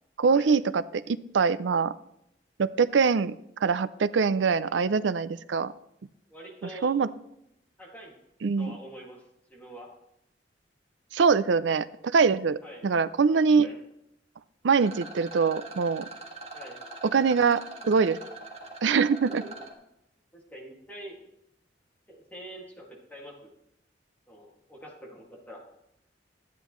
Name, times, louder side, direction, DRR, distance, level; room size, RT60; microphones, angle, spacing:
voice 1, 0.2-1.9 2.6-3.3 3.6-5.7 6.8-7.1 8.4-8.7 11.1-13.7 14.6-16.1 17.0-18.2 18.8-19.4, right 5 dB, 85° right, 16 dB, 0.5 m, -23 dB
voice 2, 6.3-6.9 7.8-8.1 8.6-9.2 9.5-9.9 12.6-12.8 13.6-13.8 16.5-16.8 17.8-18.1 19.4-19.5 20.3-21.2 22.1-23.5 24.3-25.6, equal, 10° left, -2 dB, 2.1 m, -45 dB
Rattle, 14.7-19.7, right 3 dB, 35° right, 1.6 m, -43 dB
12.5 x 10.0 x 3.1 m, 0.79 s
head